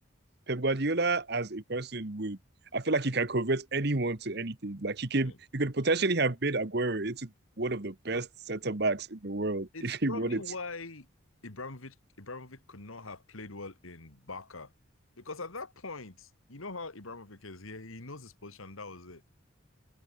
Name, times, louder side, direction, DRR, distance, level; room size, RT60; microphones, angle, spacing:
voice 1, 0.5-2.4 2.7-7.3 7.6-10.4, right 2 dB, 50° right, 1.4 m, -30 dB
voice 2, 9.7-11.1 11.4-14.7 15.2-19.2, left 3 dB, 90° left, 2.6 m, -43 dB
head